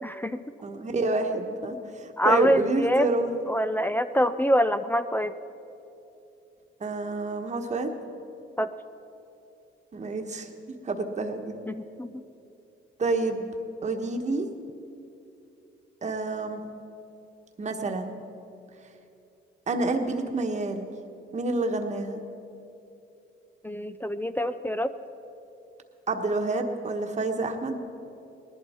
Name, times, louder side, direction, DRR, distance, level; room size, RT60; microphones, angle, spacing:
voice 1, 0.0-0.4 2.2-3.1 3.5-5.3 8.6-8.7 11.7-12.2 23.6-24.9, equal, 10° left, 11 dB, 0.4 m, -25 dB
voice 2, 0.6-3.3 6.8-7.9 9.9-10.5 10.8-11.5 13.0-13.4 13.8-14.5 16.0-16.6 17.6-18.2 19.7-20.9 21.3-22.2 26.1-27.8, right 3 dB, 35° right, 4 dB, 1.3 m, -28 dB
19.0 x 11.5 x 4.3 m, 2.8 s
cardioid pair, 90°, 20 cm